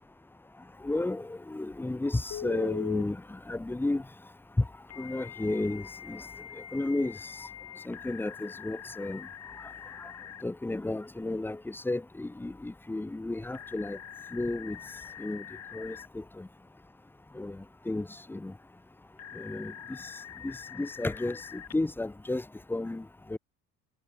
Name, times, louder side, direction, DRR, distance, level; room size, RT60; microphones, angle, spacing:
voice 1, 0.8-4.0 4.6-4.7 5.0-6.2 6.7-7.2 7.9-9.3 10.4-14.0 14.3-14.8 15.2-15.4 15.7-16.5 17.3-17.6 17.9-18.5 19.4-20.0 20.4-23.0 23.3-23.4, left 2 dB, 5° left, 0.5 m, -32 dB
Telephone, 2.3-3.0 4.9-10.4 13.5-16.1 19.2-21.7, left 9 dB, 35° left, 1.3 m, -43 dB
hypercardioid pair, 70°, 45 cm